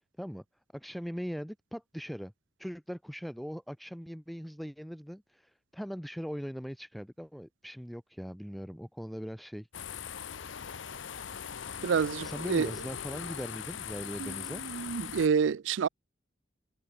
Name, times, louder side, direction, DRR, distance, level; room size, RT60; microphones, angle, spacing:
voice 1, 0.7-2.3 2.6-9.7 12.2-14.6, equal, ahead, 1.3 m, -40 dB
sound 1, 9.7-15.3, left 8 dB, 80° left, 0.8 m, -40 dB
voice 2, 11.8-12.7 14.2-14.3 14.6-15.9, right 6 dB, 80° right, 0.4 m, -28 dB
head